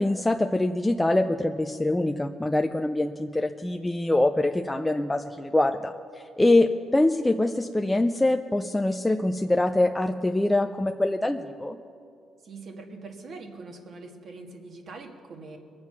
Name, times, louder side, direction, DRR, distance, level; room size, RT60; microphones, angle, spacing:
voice 1, 0.0-5.9 6.4-11.8, left 2 dB, 10° left, 5 dB, 0.5 m, -24 dB
voice 2, 12.4-15.6, right 3 dB, 55° right, 3 dB, 1.9 m, -43 dB
21.5 x 7.5 x 6.0 m, 2.3 s
cardioid pair, 90°, 0 cm